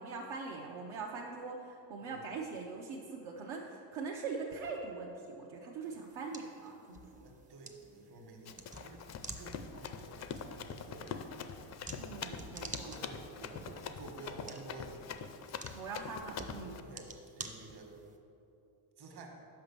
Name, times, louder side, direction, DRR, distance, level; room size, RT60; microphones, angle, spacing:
voice 1, 0.0-7.2 12.0-12.9 15.7-16.8, right 4 dB, 70° right, -2 dB, 0.9 m, -42 dB
sound 1, 5.8-18.2, right 3 dB, 15° right, 0.5 m, -50 dB
voice 2, 7.2-9.1 9.4-11.2 12.6-13.6 14.0-15.2 16.8-17.9 19.0-19.4, right 3 dB, 50° right, 1 dB, 1.4 m, -51 dB
Run, 8.5-16.8, left 6 dB, 35° left, 0.4 m, -44 dB
5.7 x 5.2 x 6.8 m, 2.9 s
cardioid pair, 105°, 49 cm